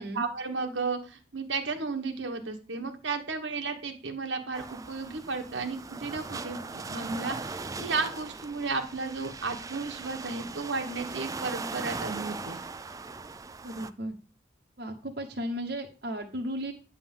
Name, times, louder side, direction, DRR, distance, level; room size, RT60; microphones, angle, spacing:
voice 1, 0.0-12.6, right 4 dB, 80° right, 5 dB, 1.2 m, -33 dB
sound 1, 4.5-13.9, right 4 dB, 20° right, 0.3 m, -39 dB
voice 2, 13.6-14.1 14.8-16.7, equal, 55° right, 3 dB, 1.0 m, -35 dB
9.6 x 3.6 x 7.1 m, 0.37 s
head